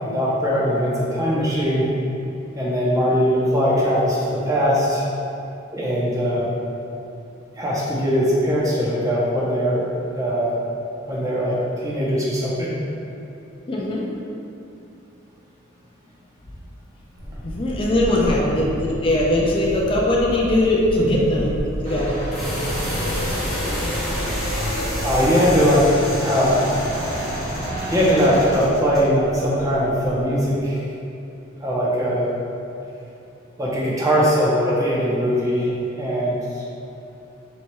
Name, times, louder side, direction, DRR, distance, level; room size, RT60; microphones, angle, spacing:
voice 1, 0.0-1.9 2.5-4.2 4.4-5.0 5.7-6.5 7.5-9.8 10.2-10.6 11.1-12.8 18.3-18.4 21.0-21.2 25.0-25.9 26.1-26.8 27.8-30.9 31.6-32.3 33.6-35.7 36.0-36.6, equal, 15° right, -6 dB, 0.7 m, -20 dB
voice 2, 13.7-14.1 17.4-21.5 21.8-22.2, left 1 dB, 25° left, -3 dB, 0.4 m, -20 dB
sound 1, 17.1-25.7, equal, 70° right, 1.1 m, -32 dB
sound 2, 20.1-30.2, equal, ahead, 1.3 m, -32 dB
sound 3, 21.8-28.6, equal, 40° right, 1.3 m, -29 dB
4.5 x 4.3 x 2.2 m, 2.7 s
head